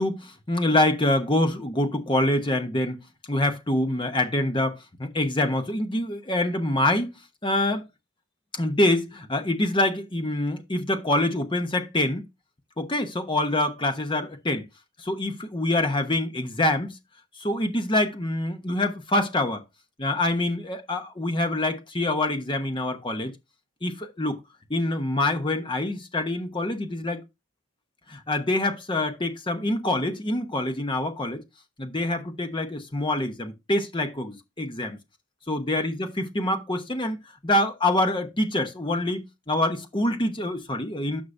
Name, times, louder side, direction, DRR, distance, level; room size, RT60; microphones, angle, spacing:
voice 1, 0.0-7.9 8.5-12.3 12.8-14.7 15.0-17.0 17.4-19.6 20.0-23.3 23.8-24.4 24.7-27.2 28.1-31.4 31.8-35.0 35.5-41.2, left 1 dB, 20° left, 0.9 m, -25 dB
9.7 x 5.7 x 2.6 m
head